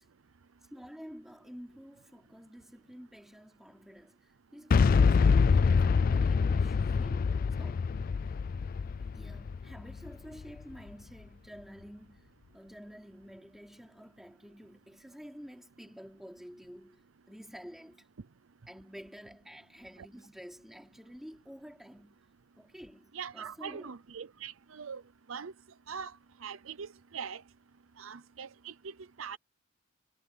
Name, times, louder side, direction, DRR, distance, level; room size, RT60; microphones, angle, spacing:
voice 1, 0.7-7.9 9.0-18.1 18.7-22.2 22.6-23.9, equal, ahead, 4.7 m, -50 dB
Boom, 4.7-10.6, left 5 dB, 45° left, 0.3 m, -25 dB
voice 2, 23.1-25.0 25.3-25.5 25.9-27.4 28.0-29.4, right 6 dB, 80° right, 0.6 m, -42 dB
head